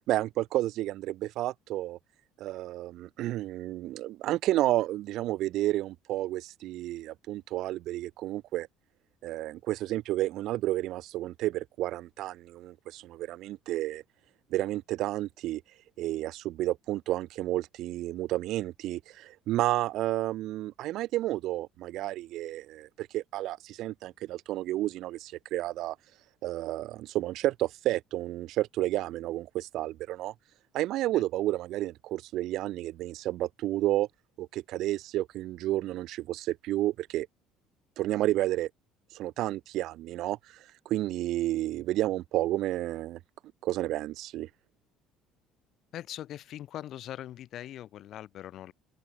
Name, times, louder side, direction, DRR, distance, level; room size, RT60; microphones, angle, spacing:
voice 1, 0.1-2.0 2.4-8.7 9.2-14.0 14.5-15.6 16.0-26.0 26.4-30.3 30.7-34.1 34.4-37.3 38.0-38.7 39.1-43.2 43.6-44.5, right 15 dB, 65° right, 0.3 m, -31 dB
voice 2, 45.9-48.7, left 12 dB, 60° left, 4.5 m, -41 dB
open air
cardioid pair, 105°, 0 cm